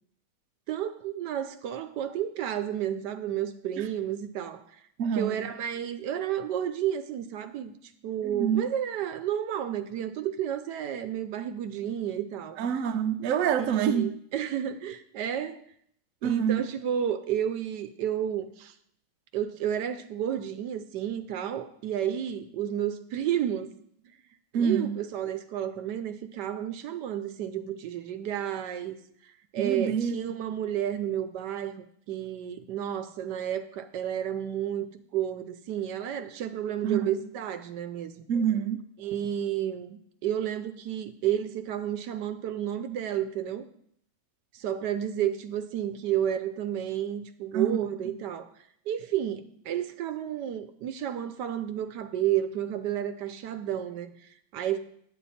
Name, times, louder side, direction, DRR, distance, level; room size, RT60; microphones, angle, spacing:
voice 1, 0.7-4.6 5.1-12.6 13.6-15.6 16.2-18.7 19.3-23.7 24.5-29.0 29.2-38.3 39.0-43.6 44.5-48.5 48.9-54.8, right 10 dB, 80° right, 1.3 m, -31 dB
voice 2, 5.0-5.4 8.2-8.7 12.6-14.1 16.2-16.6 24.5-25.0 29.6-30.2 36.8-37.2 38.3-38.8 47.5-47.8, right 8 dB, 60° right, 1.0 m, -27 dB
10.0 x 8.6 x 4.2 m
omnidirectional pair, 1.8 m